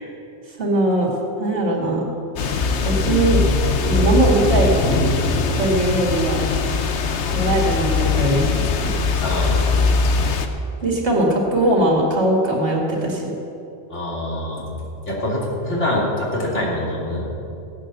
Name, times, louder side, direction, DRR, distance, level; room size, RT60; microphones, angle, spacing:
voice 1, 0.6-1.1 1.4-2.0 2.8-3.4 3.8-4.7 5.6-6.4 7.3-9.0 10.8-13.3, right 1 dB, 70° right, -1 dB, 2.8 m, -20 dB
sound 1, 2.4-10.5, left 4 dB, 75° left, 1.2 m, -20 dB
voice 2, 9.2-9.6 13.9-14.7 15.1-17.3, left 1 dB, 90° left, -5 dB, 3.6 m, -24 dB
16.0 x 8.9 x 6.9 m, 2.8 s
omnidirectional pair, 1.2 m